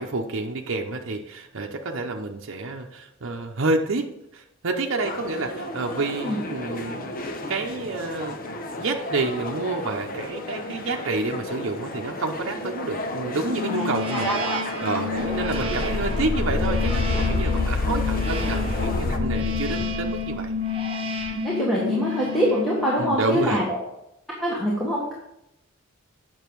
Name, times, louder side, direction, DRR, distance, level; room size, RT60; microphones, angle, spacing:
voice 1, 0.0-7.1 7.5-8.4 8.8-14.3 14.8-20.5 23.0-23.6, right 3 dB, 65° right, 1 dB, 0.8 m, -29 dB
sound 1, 5.0-19.2, left 1 dB, 45° left, 0.9 m, -34 dB
sound 2, 13.5-23.4, left 3 dB, 25° right, 1.0 m, -30 dB
voice 2, 14.1-14.6 20.7-23.8 24.4-25.1, equal, ahead, -6 dB, 1.6 m, -25 dB
sound 3, 15.2-20.7 21.2-21.3, left 3 dB, 60° left, 0.5 m, -27 dB
8.8 x 6.1 x 4.6 m, 0.83 s
head